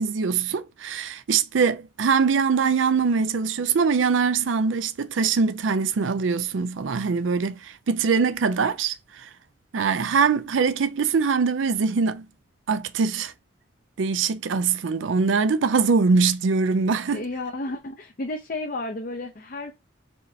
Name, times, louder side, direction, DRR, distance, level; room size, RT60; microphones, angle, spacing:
voice 1, 0.0-9.3 9.7-12.3 12.7-13.3 14.0-17.2, right 5 dB, 85° right, 0.5 m, -23 dB
voice 2, 17.1-19.7, left 2 dB, 45° left, 0.6 m, -32 dB
4.4 x 3.2 x 2.7 m
head